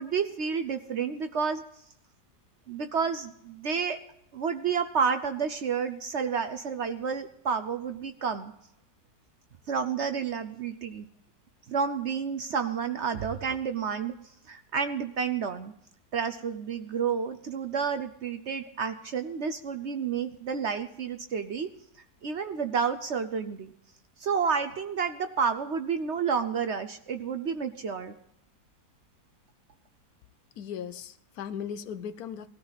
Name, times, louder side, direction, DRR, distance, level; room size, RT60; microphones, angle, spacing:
voice 1, 0.0-1.6 2.7-4.0 4.3-8.5 9.7-11.1 11.7-14.1 14.5-15.7 16.1-21.7 22.2-23.7 24.2-28.1, right 6 dB, 55° right, 9 dB, 0.8 m, -30 dB
voice 2, 30.6-32.5, left 8 dB, 70° left, 12 dB, 1.2 m, -37 dB
18.5 x 13.5 x 4.1 m, 0.76 s
omnidirectional pair, 1.7 m